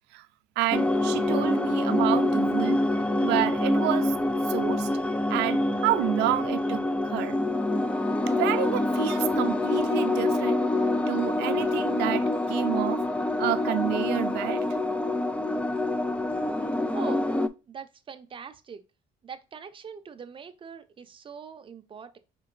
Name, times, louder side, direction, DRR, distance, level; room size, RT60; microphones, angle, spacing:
voice 1, 0.6-2.8 3.2-4.2 4.5-4.9 5.3-7.4 8.3-10.7 11.1-13.0 13.4-14.7, right 15 dB, 85° right, 0.4 m, -29 dB
sound 1, 0.7-17.5, left 2 dB, 5° left, 0.3 m, -26 dB
voice 2, 16.9-17.3 17.7-18.8 19.2-22.2, right 6 dB, 30° right, 0.6 m, -42 dB
5.0 x 3.8 x 2.5 m
cardioid pair, 110°, 17 cm